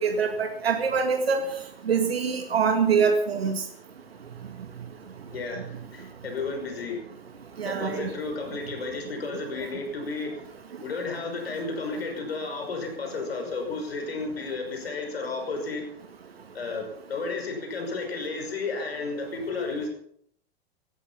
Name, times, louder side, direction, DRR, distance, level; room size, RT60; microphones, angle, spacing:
voice 1, 0.0-1.4 1.9-3.6 7.6-8.1, right 6 dB, 80° right, 5 dB, 2.0 m, -24 dB
voice 2, 5.3-7.1 7.6-10.5 10.8-15.8 16.5-19.9, left 3 dB, 80° left, 3 dB, 5.9 m, -32 dB
17.0 x 13.5 x 5.7 m, 0.65 s
figure-of-eight pair, 90°, 30 cm